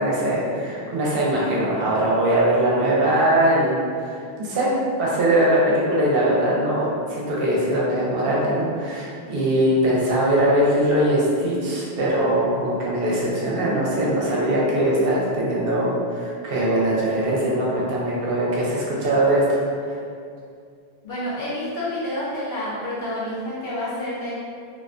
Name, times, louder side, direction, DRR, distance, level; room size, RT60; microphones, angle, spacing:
voice 1, 0.0-20.0, right 1 dB, 70° right, -6 dB, 0.7 m, -21 dB
voice 2, 21.0-24.3, left 1 dB, 55° left, -9 dB, 0.7 m, -29 dB
2.3 x 2.1 x 2.4 m, 2.3 s
omnidirectional pair, 1.1 m